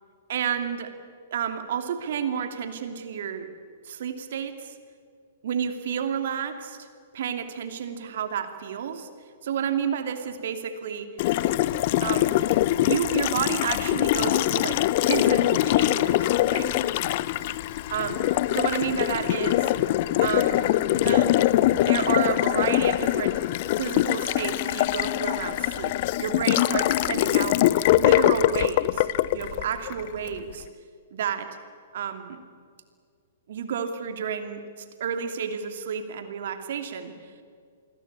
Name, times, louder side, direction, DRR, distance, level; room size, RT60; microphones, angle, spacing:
voice 1, 0.3-0.9 1.3-3.5 3.8-4.7 5.4-6.9 7.1-9.1 9.4-11.1 12.0-12.4 12.8-14.8 15.1-16.7 17.9-18.2 18.5-19.7 20.2-21.3 21.9-23.3 23.8-27.6 27.9-30.7 31.1-31.5 31.9-32.4 33.5-37.1, right 7 dB, 55° right, 8 dB, 2.7 m, -30 dB
Water tap faucet, 11.2-30.3, left 15 dB, 45° left, 0.8 m, -23 dB
27.5 x 21.0 x 8.6 m, 2.1 s
figure-of-eight pair, 110°, 0 cm